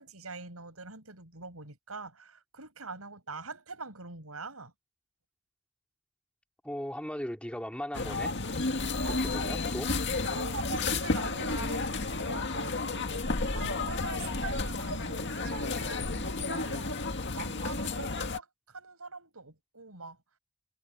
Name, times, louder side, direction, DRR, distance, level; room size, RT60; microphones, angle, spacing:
voice 1, 0.0-4.7 9.0-9.3 10.3-13.2 13.5-16.9 17.3-20.2, right 3 dB, 80° right, 6.7 m, -43 dB
voice 2, 6.6-8.3 9.0-9.9, equal, 5° left, 3.2 m, -38 dB
sound 1, 7.9-18.4, left 3 dB, 55° left, 2.0 m, -32 dB
head